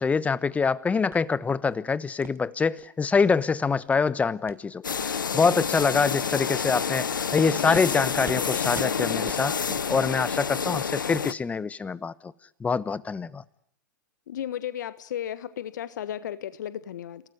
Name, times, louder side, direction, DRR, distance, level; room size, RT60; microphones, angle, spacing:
voice 1, 0.0-12.3 12.6-13.4, left 5 dB, 15° left, 17 dB, 1.1 m, -25 dB
sound 1, 1.1-1.2 1.6-1.8 2.2-2.4 2.8-2.9 3.3-3.4 3.8-4.0 4.5-4.6 4.9-5.1 5.6-5.7 6.1-6.2 6.6-6.8 7.2-7.3 7.7-7.9 8.2-8.4 8.7-8.9 9.3-9.4, right 7 dB, 20° right, 1.5 m, -43 dB
sound 2, 4.8-11.3, left 6 dB, 85° left, 1.0 m, -28 dB
voice 2, 14.3-17.2, left 10 dB, 65° left, 14 dB, 1.4 m, -34 dB
28.5 x 18.5 x 9.8 m, 0.67 s
hypercardioid pair, 110°, 10 cm